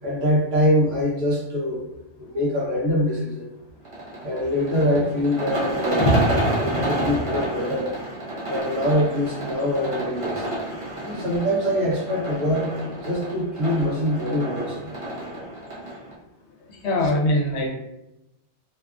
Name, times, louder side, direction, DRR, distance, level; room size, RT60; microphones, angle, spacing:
voice 1, 0.0-1.9 2.2-3.5 4.2-6.1 6.6-7.9 8.5-10.5 11.0-12.7 13.0-14.9 17.0-17.1, equal, 65° right, -3 dB, 0.9 m, -24 dB
sound 1, 3.8-16.1, right 1 dB, 40° right, 0.5 m, -30 dB
voice 2, 6.6-7.1 16.7-17.7, left 1 dB, 75° left, -1 dB, 0.9 m, -23 dB
2.8 x 2.3 x 2.3 m, 0.90 s
omnidirectional pair, 1.2 m